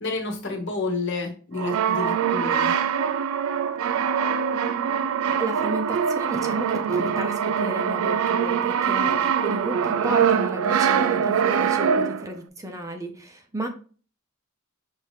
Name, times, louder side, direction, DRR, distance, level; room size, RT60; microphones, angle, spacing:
voice 1, 0.0-2.7, left 3 dB, 60° left, 2 dB, 1.1 m, -30 dB
Brass instrument, 1.5-12.4, right 7 dB, 80° right, 0.3 m, -23 dB
voice 2, 5.3-13.7, right 1 dB, 15° right, 4 dB, 0.6 m, -33 dB
5.6 x 2.7 x 3.2 m, 0.39 s
head